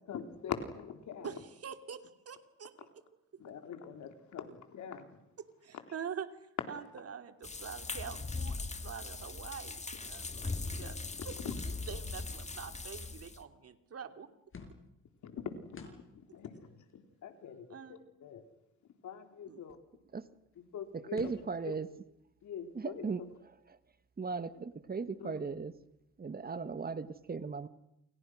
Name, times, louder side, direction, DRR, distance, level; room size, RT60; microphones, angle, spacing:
voice 1, 0.1-1.3 3.4-5.2 11.4-11.5 15.2-16.1 16.3-16.7 17.2-17.8 18.2-18.4 19.0-19.8 20.6-21.3 21.6-21.7 22.4-23.3 25.2-25.4, left 7 dB, 70° left, 6 dB, 3.8 m, -43 dB
voice 2, 1.2-2.9 5.6-6.3 6.7-11.0 11.2-11.3 11.9-14.3 17.7-18.0 19.5-19.6, right 7 dB, 50° right, 8 dB, 2.8 m, -45 dB
sound 1, 7.4-13.4, left 3 dB, 20° left, 2.0 m, -40 dB
sound 2, 14.5-15.0 15.7-16.2 16.6-16.7 16.9-17.0 17.3-18.4 20.3-20.4 20.5-20.6 21.1-21.6, left 4 dB, 45° left, 6.4 m, -51 dB
voice 3, 20.9-21.9 22.7-23.2 24.2-25.7 26.2-27.7, right 4 dB, 30° right, 12 dB, 1.6 m, -37 dB
28.5 x 28.5 x 6.4 m, 0.85 s
cardioid pair, 90°, 30 cm